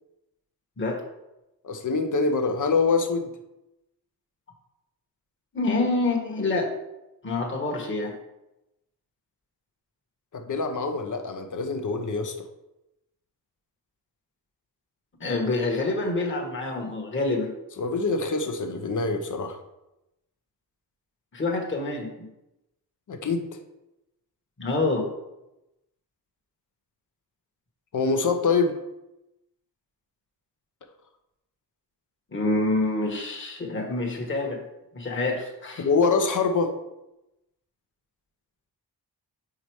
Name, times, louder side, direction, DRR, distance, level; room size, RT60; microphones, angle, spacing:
voice 1, 1.6-3.3 10.3-12.4 17.8-19.6 23.1-23.6 27.9-28.7 35.8-36.7, left 4 dB, 50° left, 6 dB, 0.8 m, -25 dB
voice 2, 5.5-6.7 7.2-8.1 15.2-17.5 21.3-22.3 24.6-25.0 32.3-34.6 34.9-35.8, left 2 dB, 30° left, 0 dB, 1.3 m, -27 dB
5.0 x 4.1 x 4.7 m, 0.92 s
cardioid pair, 85°, 40 cm